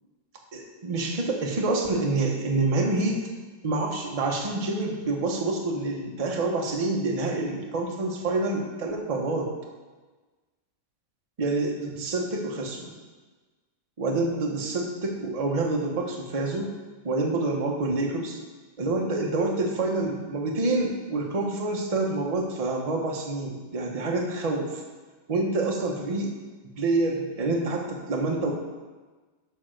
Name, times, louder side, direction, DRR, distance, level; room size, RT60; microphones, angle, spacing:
voice 1, 0.5-3.2 3.6-9.5 11.4-12.9 14.0-16.7 17.0-18.4 18.8-24.8 25.3-26.3 26.8-28.5, right 2 dB, 40° right, 0 dB, 0.5 m, -27 dB
9.1 x 3.5 x 6.3 m, 1.3 s
omnidirectional pair, 2.1 m